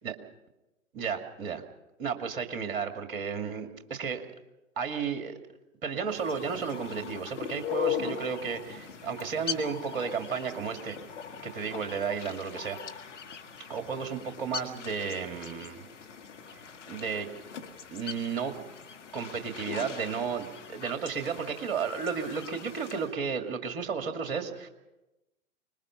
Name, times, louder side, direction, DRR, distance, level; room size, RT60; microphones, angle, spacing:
voice 1, 0.9-1.6 2.0-4.2 4.8-5.4 5.8-11.0 11.4-13.0 13.7-15.9 16.5-16.6 16.8-17.3 17.9-18.5 19.1-24.7, right 6 dB, 40° right, 6 dB, 2.3 m, -33 dB
sound 1, 6.1-23.1, left 8 dB, 60° left, 1.8 m, -40 dB
25.0 x 20.5 x 5.8 m, 1.0 s
figure-of-eight pair, 115°, 40 cm